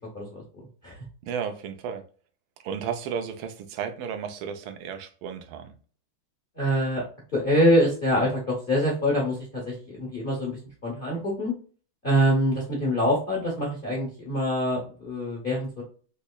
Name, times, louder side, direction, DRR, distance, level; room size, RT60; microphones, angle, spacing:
voice 1, 1.2-2.0 2.6-5.7, right 7 dB, 80° right, 1.4 m, -33 dB
voice 2, 6.6-7.0 7.3-11.5 12.0-15.8, equal, 45° left, 0.6 m, -25 dB
4.0 x 2.9 x 2.2 m
omnidirectional pair, 2.3 m